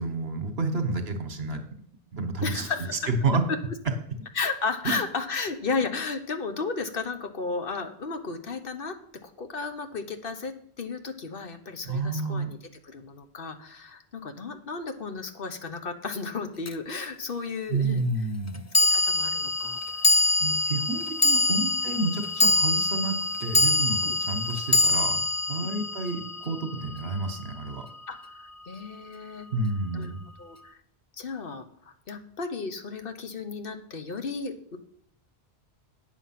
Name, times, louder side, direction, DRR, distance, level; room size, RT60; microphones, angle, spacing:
voice 1, 0.0-1.6 2.1-2.7 3.1-3.4 4.8-5.0 11.8-12.5 17.7-18.6 20.4-25.2 25.5-27.9 29.5-30.2, right 3 dB, 70° right, 7 dB, 1.5 m, -29 dB
voice 2, 2.4-3.0 4.3-9.0 9.2-12.6 12.8-18.0 18.8-20.3 21.5-21.6 24.0-24.2 25.6-25.7 28.1-29.5 29.9-30.1 30.4-30.8 31.2-34.8, left 4 dB, 60° left, 8 dB, 1.1 m, -34 dB
sound 1, 16.6-16.7 18.7-27.2, left 2 dB, 30° left, 0.3 m, -24 dB
9.0 x 7.3 x 5.8 m, 0.64 s
omnidirectional pair, 1.1 m